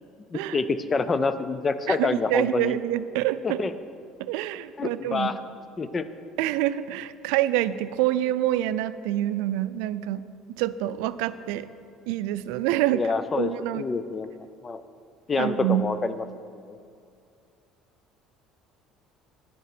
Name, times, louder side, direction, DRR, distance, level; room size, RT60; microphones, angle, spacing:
voice 1, 0.3-2.8 3.4-3.7 4.8-5.4 5.8-6.1 12.9-14.3 14.6-14.8 15.3-16.2 16.5-16.8, left 4 dB, 20° left, 12 dB, 0.4 m, -27 dB
voice 2, 1.9-3.6 4.2-5.4 6.4-11.7 12.1-13.0 13.4-13.9 15.4-15.9, right 14 dB, 90° right, 14 dB, 0.4 m, -26 dB
10.0 x 8.2 x 6.0 m, 2.4 s
cardioid pair, 155°, 0 cm